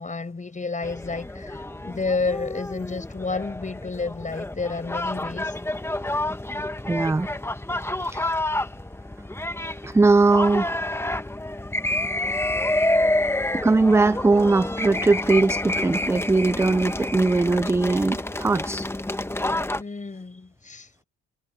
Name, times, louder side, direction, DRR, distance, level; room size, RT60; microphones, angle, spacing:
voice 1, 0.0-5.5 19.8-20.9, left 4 dB, 25° left, 6.0 m, -30 dB
sound 1, 0.8-19.8, left 1 dB, 10° left, 1.3 m, -28 dB
voice 2, 6.9-7.3 8.0-8.3 9.8-10.8 13.6-18.9, right 3 dB, 10° right, 0.4 m, -20 dB
cardioid pair, 90°, 30 cm